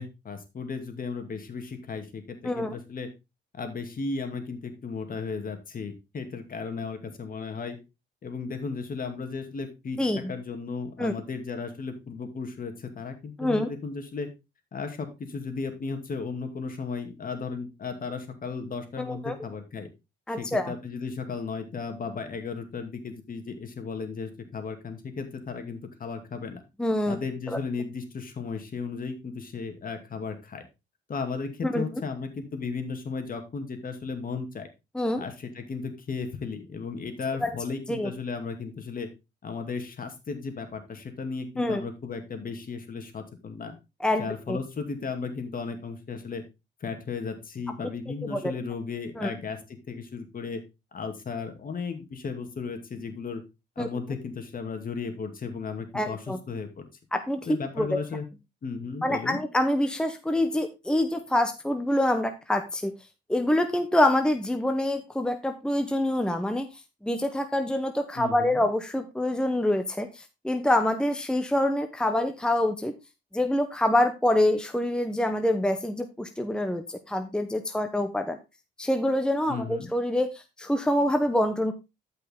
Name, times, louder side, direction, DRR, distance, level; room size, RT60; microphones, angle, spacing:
voice 1, 0.0-3.1 3.5-7.8 8.2-14.3 14.7-19.9 20.4-26.6 27.1-30.6 31.1-34.7 35.2-39.1 39.4-43.7 44.2-46.4 46.8-50.6 50.9-53.4 53.8-56.8 57.5-58.3 58.6-59.4 68.1-68.6 79.5-79.9, left 5 dB, 45° left, 6 dB, 2.6 m, -35 dB
voice 2, 10.0-10.3 11.0-11.1 13.4-13.7 19.0-19.3 20.3-20.7 26.8-27.2 31.6-31.8 34.9-35.2 37.4-37.5 37.9-38.1 41.6-41.8 44.0-44.6 48.3-48.5 49.2-49.3 53.8-53.9 55.9-56.4 57.1-57.5 57.8-58.0 59.0-62.9 63.3-66.7 67.0-72.9 73.3-78.4 78.8-81.7, left 1 dB, 5° left, 7 dB, 1.0 m, -26 dB
13.0 x 5.6 x 3.7 m, 0.25 s
cardioid pair, 90°, 20 cm